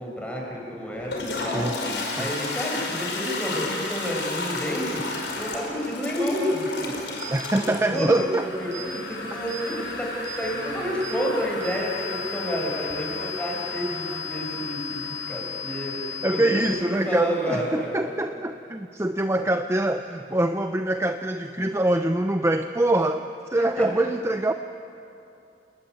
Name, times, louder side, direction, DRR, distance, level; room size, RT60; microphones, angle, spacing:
voice 1, 0.0-1.8 2.2-5.1 5.4-7.1 7.5-8.3 8.6-16.7 17.0-18.1 23.8-23.9, equal, 5° left, -2 dB, 6.6 m, -30 dB
Toilet flush, 0.9-17.7, left 3 dB, 85° left, 5.4 m, -34 dB
sound 1, 7.2-7.3 7.9-8.1 8.7-8.9 9.5-9.6 10.2-10.4 11.0-11.2 11.6-16.6, left 5 dB, 40° right, 6.1 m, -35 dB
voice 2, 7.3-8.5 16.2-24.5, right 1 dB, 15° right, 7 dB, 0.7 m, -24 dB
29.5 x 21.0 x 9.4 m, 2.7 s
head